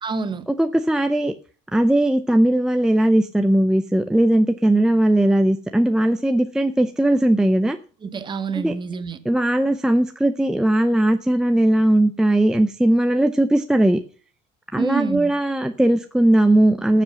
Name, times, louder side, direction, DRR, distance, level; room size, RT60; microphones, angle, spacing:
voice 1, 0.0-0.5 8.0-9.2 14.7-15.3, right 5 dB, 25° right, 1.1 m, -27 dB
voice 2, 0.6-1.3 1.7-7.8 8.6-8.7 9.3-14.0 14.7-17.0, right 1 dB, 5° right, 0.6 m, -18 dB
14.0 x 7.6 x 6.4 m
cardioid pair, 150°, 20 cm